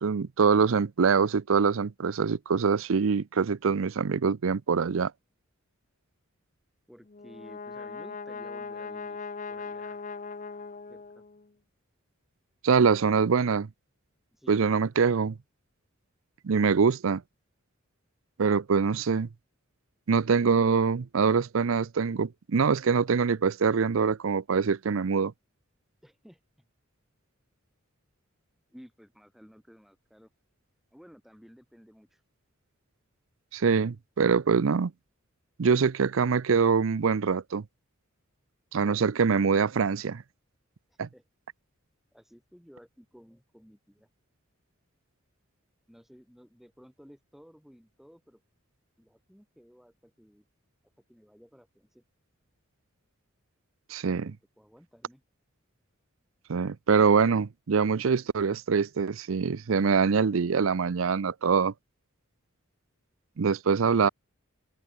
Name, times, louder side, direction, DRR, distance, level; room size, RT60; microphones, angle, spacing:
voice 1, 0.0-5.1 12.6-13.7 14.5-15.4 16.4-17.2 18.4-19.3 20.1-25.3 33.5-34.9 35.6-37.6 38.7-40.2 41.0-41.1 53.9-54.3 56.5-61.7 63.4-64.1, right 5 dB, 70° right, 0.5 m, -24 dB
voice 2, 6.9-10.0 10.9-11.2 14.3-14.7 26.0-26.7 28.7-30.3 30.9-32.2 40.9-41.2 42.1-44.1 45.9-48.4 49.0-50.5 51.1-52.0 54.2-55.2 60.3-60.4, equal, ahead, 3.7 m, -55 dB
Brass instrument, 7.1-11.5, left 4 dB, 40° left, 0.8 m, -39 dB
open air
head